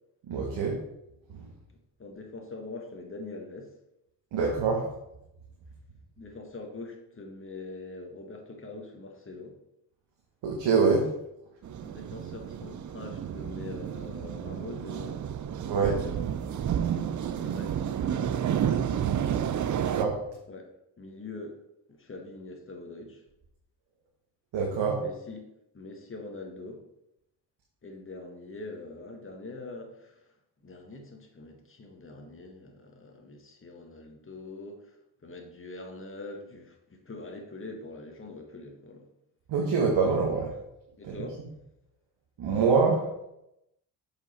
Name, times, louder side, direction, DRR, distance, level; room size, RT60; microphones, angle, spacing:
voice 1, 0.3-0.8 1.3-1.5 4.3-4.9 10.4-11.1 15.6-16.0 19.9-20.2 24.5-25.0 39.5-40.6 41.0-41.2 42.4-43.1, right 4 dB, 70° right, -1 dB, 1.6 m, -25 dB
voice 2, 2.0-3.7 6.2-9.6 11.8-15.2 15.5-16.1 17.4-18.4 20.5-20.7 21.0-21.6 21.9-23.2 25.0-25.5 25.7-26.8 27.8-30.3 30.6-39.1 41.0-41.4, left 2 dB, 25° left, 2 dB, 1.8 m, -43 dB
sound 1, 11.6-20.0, right 9 dB, 40° right, 0.6 m, -31 dB
6.9 x 5.5 x 4.4 m, 0.84 s
hypercardioid pair, 50°, 45 cm